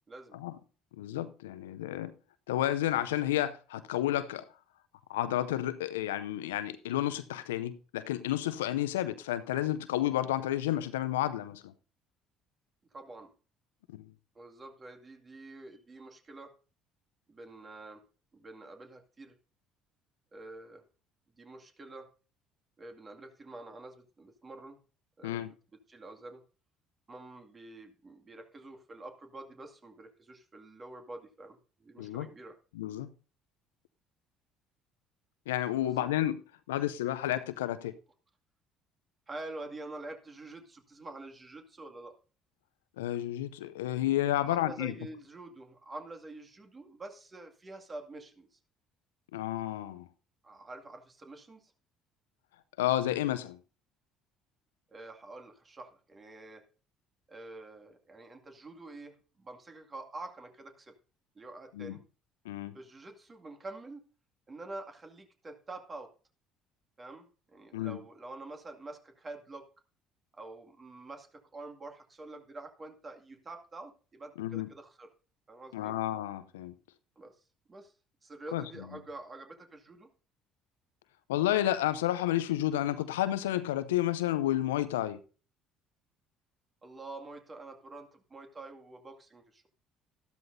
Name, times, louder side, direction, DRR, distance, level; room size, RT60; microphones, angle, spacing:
voice 1, 0.1-0.4 12.9-13.3 14.3-16.5 17.3-18.0 18.3-19.3 20.3-20.8 21.4-22.1 22.8-24.8 25.2-25.6 25.9-26.4 27.1-32.6 35.8-36.1 39.3-42.1 44.4-48.6 50.4-51.7 54.9-56.6 57.3-60.9 61.3-62.0 62.7-64.1 64.5-66.1 67.0-69.7 70.3-75.1 75.5-76.0 77.2-77.9 78.2-80.1 86.8-89.7, right 2 dB, 30° right, 2.2 m, -47 dB
voice 2, 1.0-2.1 2.5-4.4 5.1-11.7 13.9-14.0 25.2-25.5 32.0-32.3 32.8-33.1 35.5-36.4 36.7-37.9 43.0-44.9 49.3-50.1 52.8-53.6 61.8-62.0 62.5-62.7 67.7-68.0 74.4-74.7 75.7-76.7 78.5-78.6 81.3-85.2, left 13 dB, 80° left, 0.6 m, -31 dB
13.5 x 12.5 x 2.7 m
hypercardioid pair, 55°, 0 cm